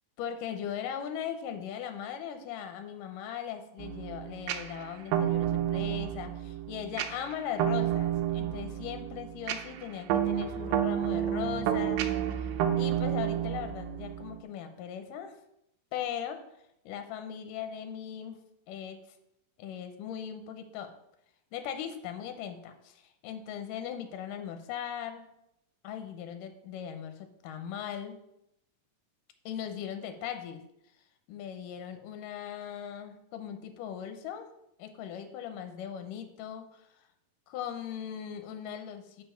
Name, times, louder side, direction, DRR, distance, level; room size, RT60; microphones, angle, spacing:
voice 1, 0.2-12.0 12.3-12.5 12.8-15.4 15.9-16.4 16.9-18.4 18.7-19.0 19.6-20.9 21.5-25.3 25.8-28.2 29.5-30.6 31.3-34.5 34.8-36.9 37.5-39.2, left 9 dB, 75° left, 7 dB, 2.3 m, -39 dB
sound 1, 3.8-14.4, right 11 dB, 85° right, 2.4 m, -30 dB
6.8 x 5.5 x 5.7 m, 0.80 s
omnidirectional pair, 4.0 m